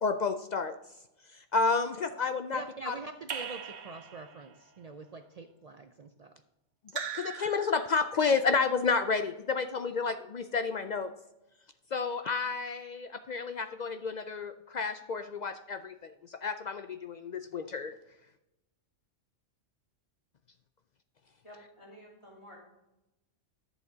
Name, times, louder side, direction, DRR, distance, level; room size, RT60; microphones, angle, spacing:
voice 1, 0.0-0.7 1.3-3.0 6.9-11.1 11.9-17.9, left 4 dB, 65° left, 9 dB, 0.4 m, -31 dB
voice 2, 2.5-6.3, right 3 dB, 60° right, 7 dB, 0.4 m, -44 dB
Raindrop / Drip, 3.3-4.5 6.9-8.2, right 7 dB, 80° right, 1.3 m, -40 dB
voice 3, 21.4-22.7, equal, 25° left, -3 dB, 2.7 m, -52 dB
11.0 x 7.1 x 3.9 m, 0.94 s
omnidirectional pair, 1.2 m